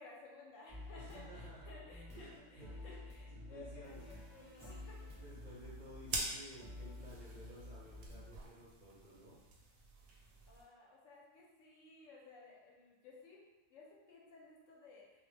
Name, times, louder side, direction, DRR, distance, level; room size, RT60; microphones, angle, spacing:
voice 1, 0.0-5.2 10.5-13.4 13.7-15.2, left 3 dB, 75° left, -3 dB, 0.9 m, -57 dB
sound 1, 0.7-8.3, left 1 dB, 5° left, 0.8 m, -51 dB
voice 2, 1.0-1.7 2.1-3.0 3.3-4.1 5.1-9.4, right 1 dB, 50° right, -9 dB, 0.5 m, -55 dB
sound 2, 3.8-10.6, right 3 dB, 90° right, 1.0 m, -48 dB
2.3 x 2.1 x 3.1 m, 1.1 s
omnidirectional pair, 1.4 m